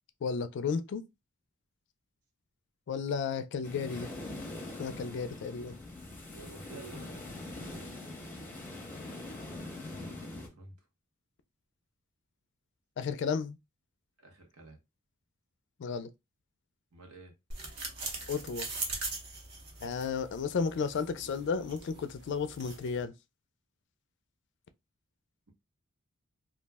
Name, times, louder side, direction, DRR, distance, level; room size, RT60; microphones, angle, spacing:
voice 1, 0.2-1.0 2.9-4.1 4.8-5.8 13.0-13.6 15.8-16.1 18.3-18.7 19.8-23.1, left 5 dB, 55° left, 0.3 m, -33 dB
sound 1, 3.6-10.5, left 2 dB, 10° left, 0.6 m, -43 dB
voice 2, 6.2-8.6 10.0-10.7 14.2-14.8 16.9-17.3, right 3 dB, 85° right, 0.9 m, -52 dB
sound 2, 17.5-23.0, right 3 dB, 50° right, 0.7 m, -41 dB
2.3 x 2.0 x 3.4 m
head